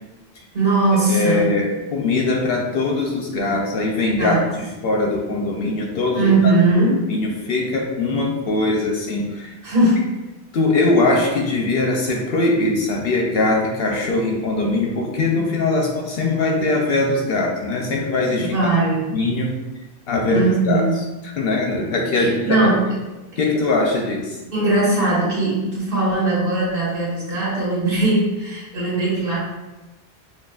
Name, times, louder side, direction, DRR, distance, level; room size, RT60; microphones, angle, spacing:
voice 1, 0.5-1.5 4.2-4.4 6.1-7.1 9.6-10.1 18.4-19.1 20.3-21.0 22.1-23.0 24.5-29.4, right 2 dB, 55° right, -7 dB, 1.6 m, -19 dB
voice 2, 1.1-6.5 7.1-9.5 10.5-18.5 19.1-19.6 20.1-20.8 21.4-22.6 23.4-24.4, left 2 dB, 65° left, 0 dB, 0.7 m, -21 dB
6.1 x 2.2 x 2.3 m, 1.1 s
omnidirectional pair, 1.2 m